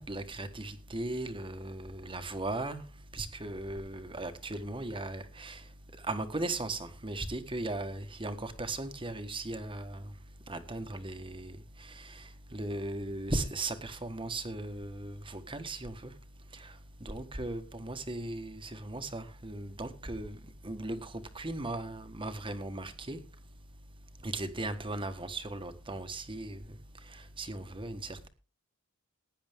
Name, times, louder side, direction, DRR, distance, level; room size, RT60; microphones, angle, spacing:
voice 1, 0.0-2.8 3.1-5.6 6.1-10.0 10.5-11.5 12.0-12.2 12.5-16.1 16.6-16.7 17.0-20.4 20.6-23.2 24.2-26.6 27.4-28.3, right 2 dB, 25° right, 1.4 m, -37 dB
16.5 x 9.9 x 3.6 m
head